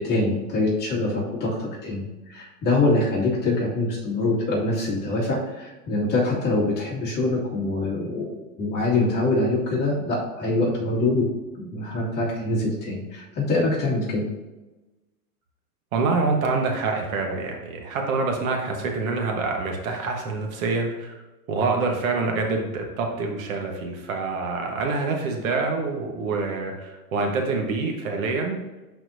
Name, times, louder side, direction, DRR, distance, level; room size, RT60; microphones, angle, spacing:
voice 1, 0.0-11.3 11.6-14.3, left 2 dB, 20° left, -6 dB, 2.2 m, -24 dB
voice 2, 15.9-21.2 21.5-28.6, right 3 dB, 60° right, 1 dB, 1.4 m, -26 dB
11.0 x 4.3 x 2.7 m, 1.1 s
hypercardioid pair, 145°, 47 cm